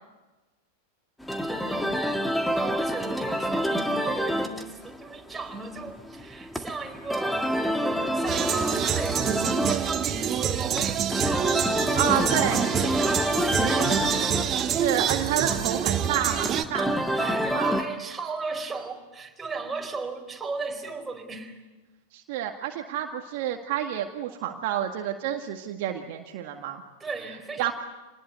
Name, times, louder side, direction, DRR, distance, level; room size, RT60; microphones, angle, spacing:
sound 1, 1.2-17.8, equal, 5° left, 1.9 m, -29 dB
voice 1, 1.4-7.5 7.9-14.1 15.5-15.7 16.8-21.6 27.0-27.7, right 3 dB, 15° right, 3 dB, 4.4 m, -36 dB
sound 2, 8.3-16.6, right 9 dB, 30° right, 1.5 m, -27 dB
voice 2, 12.0-12.6 14.5-17.8 22.1-26.8 27.6-27.7, right 10 dB, 55° right, 3 dB, 1.9 m, -29 dB
27.0 x 20.0 x 8.4 m, 1.2 s
figure-of-eight pair, 95°, 0 cm